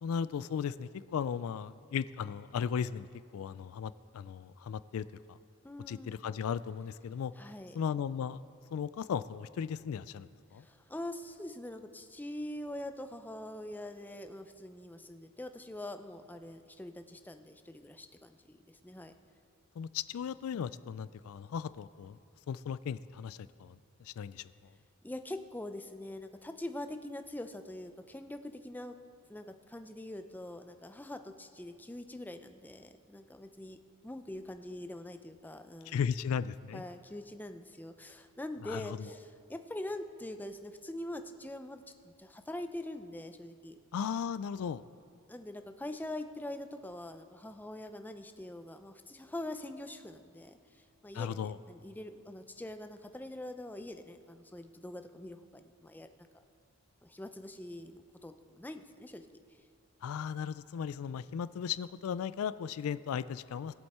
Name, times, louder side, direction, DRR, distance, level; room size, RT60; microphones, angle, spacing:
voice 1, 0.0-3.1 3.3-5.4 5.9-7.3 7.7-8.4 8.7-10.6 19.8-22.2 22.5-24.5 35.9-36.8 38.6-39.1 43.9-44.8 51.1-51.6 60.0-63.7, left 7 dB, 75° left, 16 dB, 0.3 m, -36 dB
voice 2, 5.6-6.2 7.4-7.8 10.6-19.1 25.0-29.0 29.3-33.8 34.0-36.0 36.7-43.8 45.3-56.1 57.0-59.3, left 1 dB, 10° left, 8 dB, 0.5 m, -44 dB
20.5 x 7.9 x 4.3 m, 2.3 s
head